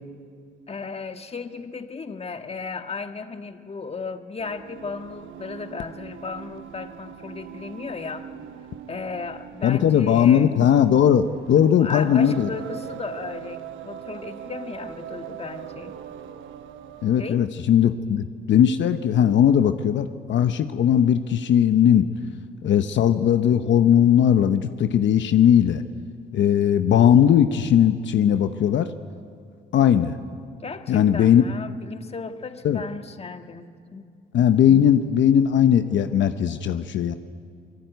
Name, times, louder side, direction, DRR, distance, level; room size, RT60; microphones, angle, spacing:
voice 1, 0.7-8.3 8.9-10.5 11.6-16.0 17.2-17.5 30.6-34.1, left 4 dB, 30° left, 7 dB, 1.6 m, -35 dB
Singing, 4.4-17.6, right 10 dB, 80° right, 1.1 m, -41 dB
voice 2, 9.6-12.5 17.0-22.1 22.6-25.8 26.3-28.9 29.7-30.2 30.9-31.4 32.6-32.8 34.3-37.2, left 9 dB, 70° left, 9 dB, 0.9 m, -18 dB
27.0 x 19.5 x 9.3 m, 2.3 s
cardioid pair, 90°, 20 cm